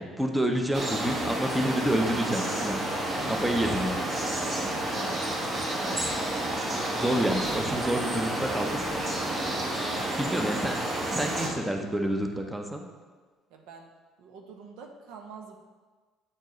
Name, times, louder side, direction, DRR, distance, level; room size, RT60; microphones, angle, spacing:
voice 1, 0.0-2.8 3.3-4.0 6.9-8.9 10.2-10.7 11.1-12.9, right 1 dB, 5° right, 3 dB, 0.7 m, -28 dB
sound 1, 0.7-11.5, right 1 dB, 35° right, 1.2 m, -30 dB
sound 2, 2.8-3.8 4.5-4.8 5.8-6.3 7.2-7.9 8.5-9.2, left 5 dB, 55° left, 0.4 m, -49 dB
voice 2, 9.6-10.3 13.5-13.9 14.2-15.6, right 5 dB, 80° right, 3 dB, 0.7 m, -46 dB
8.1 x 4.4 x 3.1 m, 1.4 s
cardioid pair, 100°, 0 cm